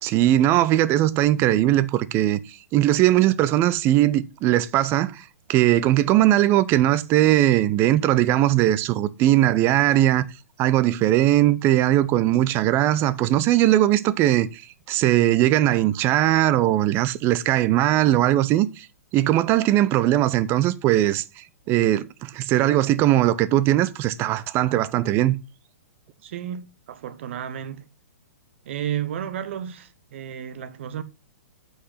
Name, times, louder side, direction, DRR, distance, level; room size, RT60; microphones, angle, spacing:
voice 1, 0.0-10.3 10.6-14.6 14.9-18.9 19.1-25.4, right 14 dB, 30° right, 0.7 m, -20 dB
voice 2, 26.2-27.9 28.6-31.0, right 10 dB, 50° right, 1.1 m, -32 dB
8.1 x 5.7 x 5.7 m
figure-of-eight pair, 115°, 8 cm